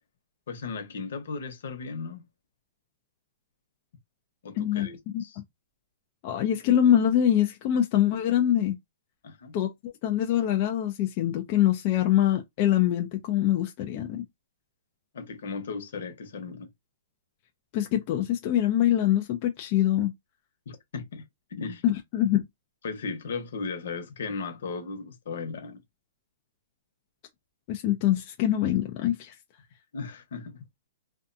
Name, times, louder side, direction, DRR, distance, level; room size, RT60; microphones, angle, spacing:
voice 1, 0.5-2.3 4.4-5.4 9.2-9.5 15.1-16.7 20.7-21.2 21.5-21.8 22.8-25.8 29.9-30.6, left 4 dB, 70° left, 1.0 m, -36 dB
voice 2, 4.6-4.9 5.1-5.4 6.2-8.8 9.5-14.2 17.7-20.1 21.8-22.4 27.7-29.3, left 11 dB, 35° left, 0.4 m, -24 dB
2.5 x 2.3 x 2.6 m
hypercardioid pair, 160°, 0 cm